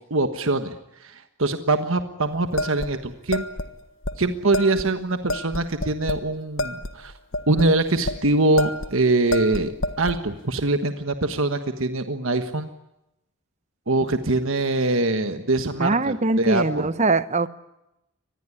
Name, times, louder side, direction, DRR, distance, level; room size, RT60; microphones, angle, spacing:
voice 1, 0.1-0.7 1.0-3.5 4.2-7.1 7.5-9.7 10.0-12.7 13.9-15.9 16.4-16.9, right 2 dB, 60° right, 8 dB, 1.4 m, -23 dB
sound 1, 2.6-3.7 4.0-4.1 4.5-4.9 5.3-6.3 6.6-8.2 8.6-8.9 9.3-10.2, left 1 dB, 55° left, 1.5 m, -28 dB
voice 2, 15.8-17.5, right 3 dB, 30° right, 14 dB, 0.9 m, -22 dB
25.0 x 20.0 x 9.8 m, 0.89 s
head